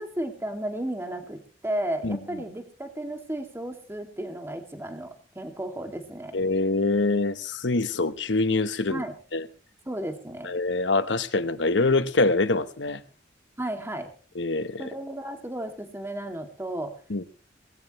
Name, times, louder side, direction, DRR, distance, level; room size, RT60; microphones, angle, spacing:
voice 1, 0.0-6.4 8.9-9.1 9.9-10.5 13.6-14.1 14.8-16.9, right 1 dB, 15° right, 2.4 m, -33 dB
voice 2, 6.3-9.0 9.3-9.5 10.4-13.0 14.3-14.8 17.1-17.2, left 3 dB, 90° left, 1.1 m, -24 dB
19.5 x 16.0 x 3.1 m
head